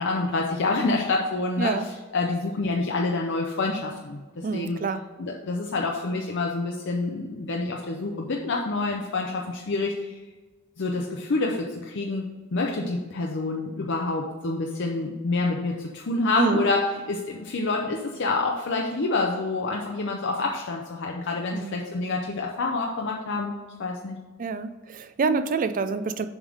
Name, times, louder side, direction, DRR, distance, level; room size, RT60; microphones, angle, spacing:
voice 1, 0.0-1.8 2.1-4.8 5.2-10.2 10.8-23.5 23.8-24.2 25.2-25.5, left 3 dB, 60° left, 0 dB, 0.6 m, -27 dB
voice 2, 4.4-5.0 16.4-16.6 21.5-21.8 24.4-26.3, right 4 dB, 40° right, 11 dB, 0.4 m, -27 dB
7.2 x 3.5 x 6.4 m, 1.3 s
head